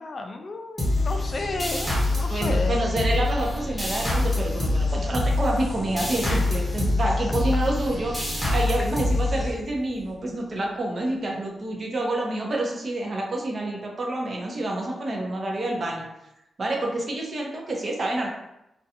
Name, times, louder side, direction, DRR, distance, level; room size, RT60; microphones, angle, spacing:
voice 1, 0.0-2.8 6.3-6.5, left 3 dB, 50° left, 5 dB, 0.3 m, -32 dB
sound 1, 0.8-10.0, left 2 dB, 15° left, 0.9 m, -25 dB
voice 2, 2.3-8.2 8.5-16.1 16.6-18.3, right 1 dB, 50° right, -1 dB, 0.7 m, -28 dB
2.5 x 2.2 x 2.8 m, 0.87 s
cardioid pair, 70°, 0 cm